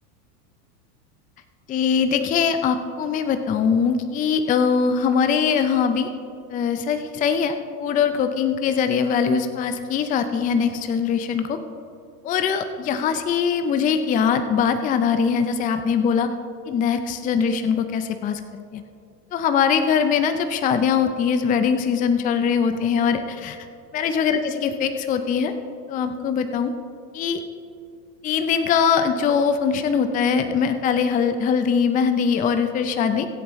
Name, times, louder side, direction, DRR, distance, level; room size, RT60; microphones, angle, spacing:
voice 1, 1.7-6.1 6.5-11.6 12.2-16.3 16.7-18.4 18.7-18.8 19.3-23.6 23.9-25.5 25.9-26.7 27.1-27.4 28.2-33.3, left 6 dB, 15° left, 8 dB, 0.5 m, -22 dB
21.5 x 8.4 x 3.1 m, 2.4 s
hypercardioid pair, 110°, 48 cm